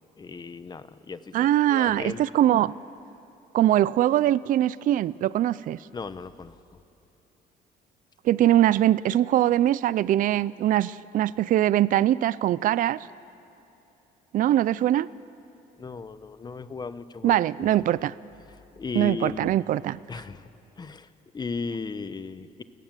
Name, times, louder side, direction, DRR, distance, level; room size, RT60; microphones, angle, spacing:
voice 1, 0.2-2.2 5.9-6.6 15.8-17.7 18.8-19.6 20.1-20.5 20.8-21.1 21.3-22.6, left 4 dB, 25° left, 13 dB, 1.0 m, -36 dB
voice 2, 1.3-2.7 3.5-5.8 8.2-13.1 14.3-15.1 17.2-18.1 18.9-20.0, right 12 dB, 55° right, 19 dB, 0.4 m, -22 dB
30.0 x 16.5 x 7.5 m, 2.9 s
cardioid pair, 110°, 17 cm